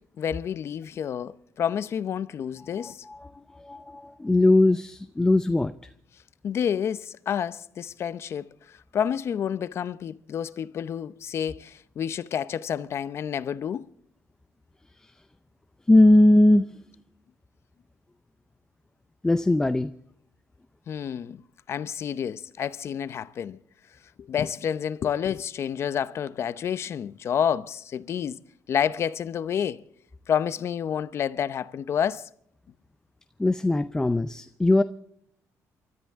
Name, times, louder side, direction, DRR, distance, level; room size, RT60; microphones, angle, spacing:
voice 1, 0.2-3.0 6.4-13.9 20.9-21.4 21.7-23.6 24.2-28.4 28.7-29.8 30.3-32.3, left 8 dB, 50° left, 0.7 m, -29 dB
voice 2, 2.8-3.3 3.6-5.7 15.9-16.7 19.2-19.9 33.4-34.8, left 1 dB, 10° left, 0.6 m, -20 dB
28.5 x 13.5 x 3.6 m
cardioid pair, 130°, 6 cm